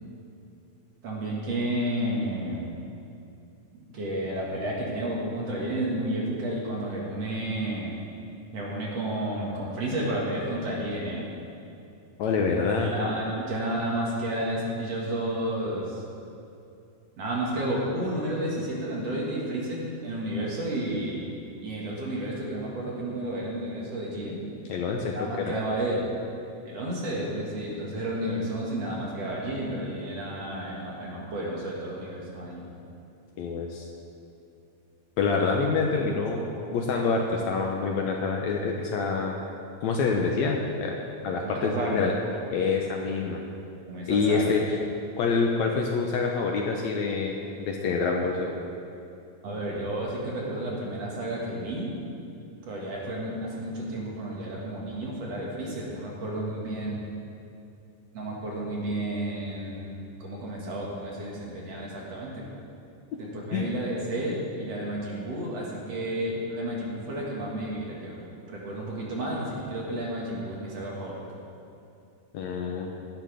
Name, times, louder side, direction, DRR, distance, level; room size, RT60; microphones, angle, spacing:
voice 1, 1.0-2.7 3.7-7.9 8.5-11.3 12.8-16.0 17.2-21.3 21.6-24.4 25.1-26.1 26.6-32.6 35.4-35.5 35.9-36.1 41.4-42.1 43.9-44.6 49.4-52.0 52.7-57.0 58.1-62.5 63.2-71.2, right 1 dB, 55° right, -4 dB, 2.7 m, -31 dB
voice 2, 12.2-12.9 24.7-25.5 33.4-33.9 35.2-36.4 36.7-39.3 39.8-40.9 41.2-42.1 42.5-43.4 44.1-44.8 45.2-48.5 63.5-63.7 72.3-72.9, left 4 dB, 70° left, 0 dB, 1.9 m, -26 dB
16.0 x 12.0 x 3.5 m, 2.7 s
omnidirectional pair, 3.8 m